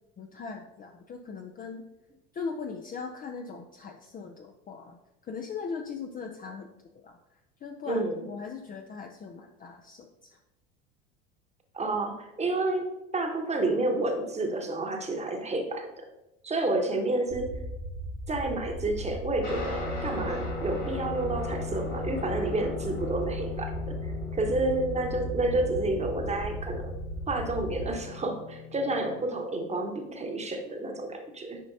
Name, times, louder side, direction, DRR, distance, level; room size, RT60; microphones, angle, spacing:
voice 1, 0.2-1.9 2.3-5.0 5.2-6.7 7.0-7.2 7.6-10.3, left 5 dB, 25° left, 4 dB, 0.5 m, -39 dB
voice 2, 7.9-8.3 11.7-16.0 16.4-17.6 18.3-26.9 27.3-31.6, right 2 dB, 20° right, 4 dB, 1.2 m, -30 dB
sound 1, 17.3-27.9, right 1 dB, 55° right, 1.3 m, -37 dB
Guitar, 19.4-29.2, left 4 dB, 90° left, 2.2 m, -39 dB
9.2 x 5.1 x 2.7 m, 0.95 s
hypercardioid pair, 75°, 37 cm